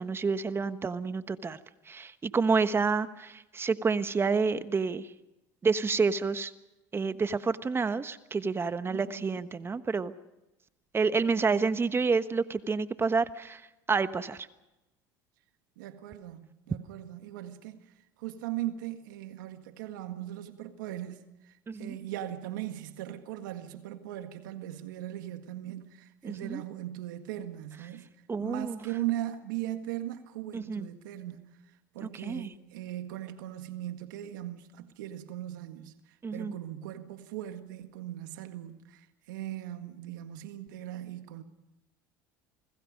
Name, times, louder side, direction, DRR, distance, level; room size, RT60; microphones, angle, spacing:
voice 1, 0.0-1.6 1.9-5.1 5.6-6.5 6.9-10.1 10.9-13.6 13.9-14.5 21.7-22.0 26.2-26.6 28.3-28.8 30.5-30.9 32.0-32.5 36.2-36.5, right 4 dB, 25° right, 1.3 m, -29 dB
voice 2, 8.9-9.3 15.8-17.8 18.2-21.2 21.8-28.1 28.4-31.4 31.9-35.9 36.3-41.4, right 13 dB, 85° right, 1.8 m, -39 dB
29.5 x 20.5 x 5.2 m
supercardioid pair, 95°, 10 cm